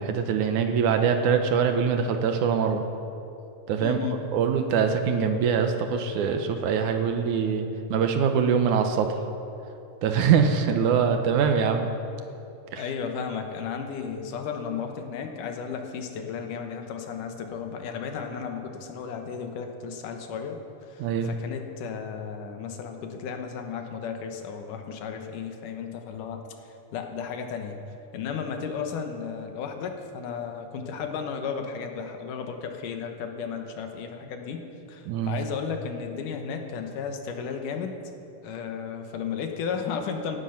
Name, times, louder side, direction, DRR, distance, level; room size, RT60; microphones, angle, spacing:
voice 1, 0.0-2.8 3.7-4.0 4.3-9.1 10.0-11.9 12.7-12.8 21.0-21.3 35.1-35.4, right 6 dB, 75° right, 6 dB, 2.2 m, -23 dB
voice 2, 3.8-4.2 12.8-26.4 26.9-27.8 28.1-34.6 34.9-37.9 38.4-40.4, left 6 dB, 75° left, 4 dB, 2.6 m, -34 dB
18.0 x 10.0 x 5.8 m, 2.7 s
omnidirectional pair, 3.8 m